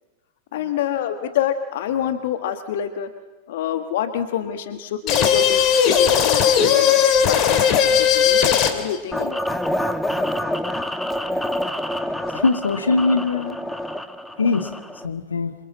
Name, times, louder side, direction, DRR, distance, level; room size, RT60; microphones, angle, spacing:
voice 1, 0.5-3.1 3.5-6.9 7.2-9.4, left 9 dB, 55° left, 9 dB, 1.5 m, -27 dB
sound 1, 5.1-9.0, left 8 dB, 35° left, 2.9 m, -17 dB
sound 2, 9.1-15.1, left 1 dB, 5° left, 1.3 m, -27 dB
voice 2, 12.3-13.6 14.4-14.7 15.0-15.5, left 3 dB, 75° left, 8 dB, 1.8 m, -21 dB
27.5 x 24.5 x 7.6 m, 1.2 s
figure-of-eight pair, 90°, 0 cm